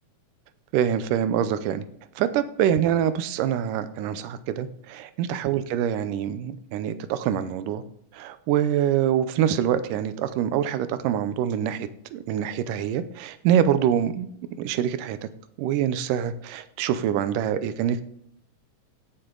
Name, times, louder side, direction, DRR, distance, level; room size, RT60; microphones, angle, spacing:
voice 1, 0.7-1.8 2.2-7.8 8.1-14.3 14.6-15.2 15.6-18.0, right 9 dB, 85° right, 12 dB, 2.3 m, -25 dB
16.5 x 6.6 x 3.8 m, 0.69 s
omnidirectional pair, 3.7 m